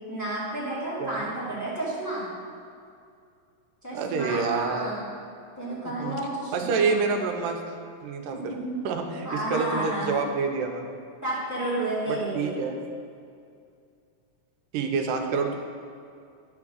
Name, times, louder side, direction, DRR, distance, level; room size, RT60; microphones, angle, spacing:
voice 1, 0.1-2.3 3.8-5.2 5.6-7.0 8.3-8.8 9.2-10.2 11.2-12.6, right 1 dB, 10° left, -10 dB, 1.1 m, -31 dB
voice 2, 3.9-4.9 5.9-6.2 6.5-7.6 8.0-8.5 8.8-10.8 12.1-12.8 14.7-15.5, right 5 dB, 85° right, 4 dB, 2.3 m, -27 dB
10.5 x 3.6 x 6.2 m, 2.3 s
omnidirectional pair, 3.8 m